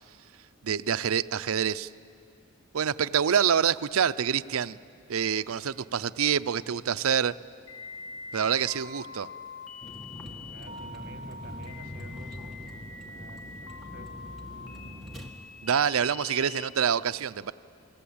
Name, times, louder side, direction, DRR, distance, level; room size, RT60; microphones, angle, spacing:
voice 1, 0.6-1.9 2.7-4.8 5.1-7.3 8.3-9.3 15.6-17.5, right 8 dB, 70° right, 14 dB, 0.5 m, -26 dB
sound 1, 7.7-16.7, left 4 dB, 75° left, 3.2 m, -44 dB
Vehicle, 9.8-15.3, equal, ahead, 2.0 m, -43 dB
voice 2, 10.5-12.6 12.9-14.1, right 2 dB, 45° right, 6 dB, 2.0 m, -49 dB
28.5 x 19.5 x 8.7 m, 2.6 s
head